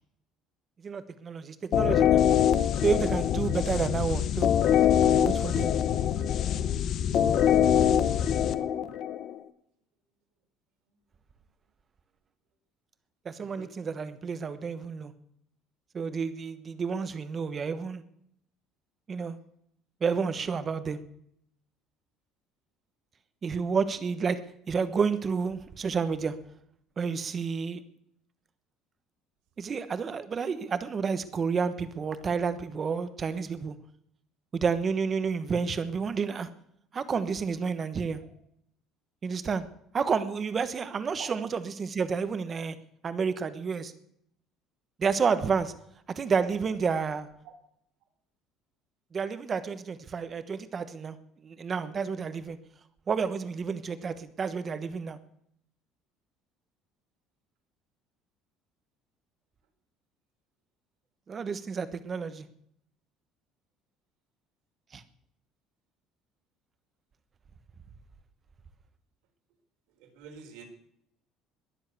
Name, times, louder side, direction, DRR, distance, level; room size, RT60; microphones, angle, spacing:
voice 1, 0.8-2.2 2.8-4.5 5.2-5.7 13.2-15.1 15.9-18.0 19.1-19.4 20.0-21.0 23.4-24.4 24.7-26.4 27.0-27.8 29.6-33.7 34.5-36.5 36.9-38.2 39.2-39.6 39.9-42.8 43.0-43.9 45.0-45.7 46.1-47.3 49.1-51.2 51.4-52.6 53.1-55.2 61.3-62.5 64.9-65.0, right 5 dB, 25° right, 12 dB, 1.1 m, -30 dB
sound 1, 1.7-9.4, left 9 dB, 45° left, 0.9 m, -24 dB
voice 2, 70.0-70.7, right 7 dB, 85° right, 4 dB, 4.1 m, -46 dB
21.0 x 7.5 x 8.2 m, 0.73 s
cardioid pair, 160°, 0 cm